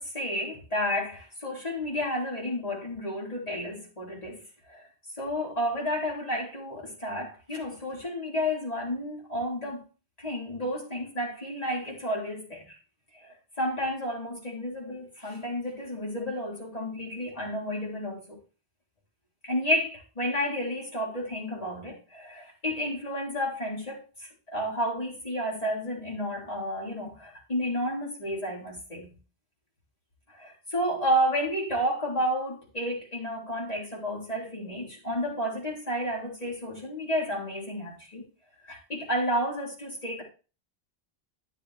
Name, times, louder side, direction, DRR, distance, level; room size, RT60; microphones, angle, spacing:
voice 1, 0.0-4.4 4.7-4.8 5.2-9.8 10.2-12.8 13.6-18.4 19.4-29.1 30.4-38.2 38.6-40.2, equal, 40° left, 3.7 m, -31 dB
13.0 x 6.9 x 3.0 m
omnidirectional pair, 1.1 m